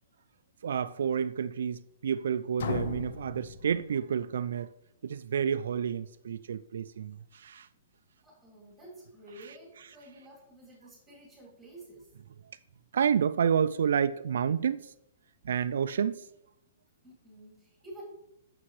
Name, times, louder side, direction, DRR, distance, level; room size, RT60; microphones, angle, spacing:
voice 1, 0.6-4.7 5.0-7.7 12.9-14.9 15.4-16.3, right 7 dB, 75° right, 0.3 m, -29 dB
sound 1, 2.6-4.4, left 5 dB, 65° left, 0.7 m, -37 dB
voice 2, 8.2-12.1 17.0-18.0, right 1 dB, ahead, 2.8 m, -51 dB
8.6 x 6.7 x 3.2 m
hypercardioid pair, 170°, 0 cm